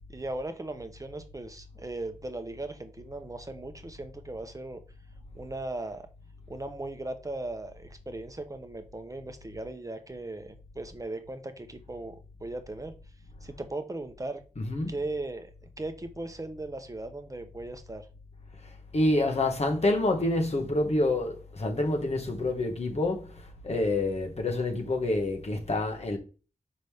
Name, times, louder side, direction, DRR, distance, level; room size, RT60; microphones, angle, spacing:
voice 1, 0.1-4.8 5.3-6.1 6.5-12.2 12.4-12.9 13.4-14.4 14.9-15.5 15.8-18.1, right 2 dB, 25° right, 0.8 m, -38 dB
voice 2, 14.5-15.0 18.6-26.2, left 2 dB, 55° left, 1.4 m, -28 dB
6.0 x 5.3 x 3.5 m
wide cardioid pair, 100°, 13 cm